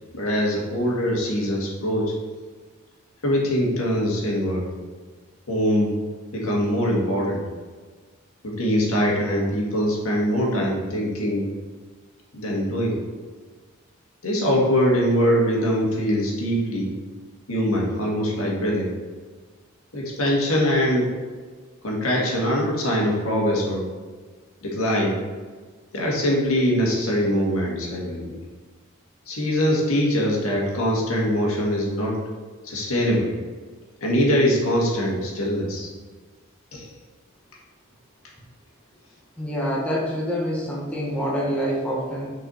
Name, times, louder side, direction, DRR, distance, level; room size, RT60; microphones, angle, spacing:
voice 1, 0.1-2.1 3.2-4.7 5.5-6.0 6.3-7.4 8.4-11.5 12.3-13.0 14.2-16.9 17.5-18.9 19.9-21.1 21.8-23.9 24.6-25.2 25.9-28.3 29.3-32.2 32.6-33.3 34.0-35.9 36.7-36.9, equal, 80° left, -3 dB, 1.9 m, -23 dB
voice 2, 39.4-42.3, equal, 5° left, -5 dB, 1.3 m, -26 dB
6.8 x 4.8 x 4.3 m, 1.5 s
head